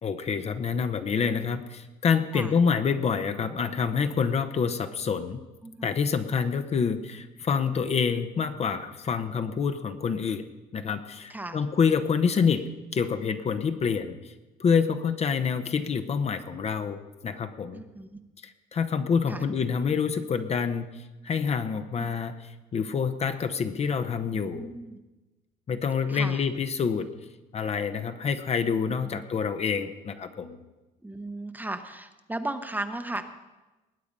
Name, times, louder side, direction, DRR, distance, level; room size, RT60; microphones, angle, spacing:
voice 1, 0.0-5.4 5.8-10.5 10.7-12.6 12.9-14.3 14.6-17.8 18.4-24.7 25.7-27.1 27.5-30.6, left 6 dB, 40° left, 9 dB, 0.9 m, -27 dB
voice 2, 5.6-6.0 11.3-11.6 17.7-18.2 19.3-19.4 22.0-22.1 24.3-25.0 26.1-26.4 28.9-29.2 31.0-33.2, right 2 dB, 10° right, 8 dB, 0.9 m, -36 dB
19.5 x 8.5 x 5.4 m, 1.1 s
cardioid pair, 110°, 17 cm